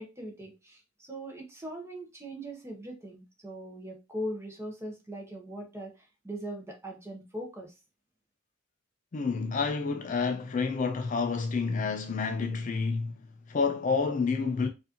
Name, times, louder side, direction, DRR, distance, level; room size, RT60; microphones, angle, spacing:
voice 1, 0.0-7.7, right 1 dB, 10° right, 0.8 m, -40 dB
voice 2, 9.1-13.2 13.5-14.7, left 4 dB, 35° left, 0.3 m, -29 dB
4.6 x 2.5 x 2.8 m
head